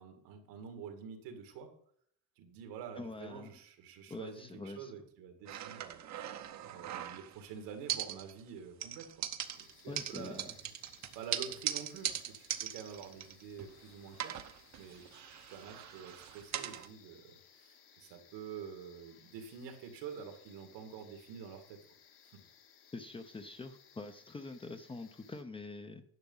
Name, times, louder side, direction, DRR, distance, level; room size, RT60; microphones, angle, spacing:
voice 1, 0.0-1.7 2.4-6.1 6.7-9.1 9.5-10.6 11.2-14.4 14.7-15.0 15.5-21.8, right 7 dB, 85° right, 5 dB, 2.2 m, -47 dB
voice 2, 2.9-3.6 4.1-4.9 9.8-10.5 22.9-26.0, left 3 dB, 15° left, 8 dB, 0.6 m, -45 dB
sound 1, 5.5-7.5 7.9-8.5 8.8-13.8 14.1-16.9, right 11 dB, 45° right, 0.8 m, -40 dB
sound 2, 9.4-25.4, left 8 dB, 70° left, 2.0 m, -63 dB
10.5 x 6.0 x 5.5 m, 0.65 s
cardioid pair, 145°, 40 cm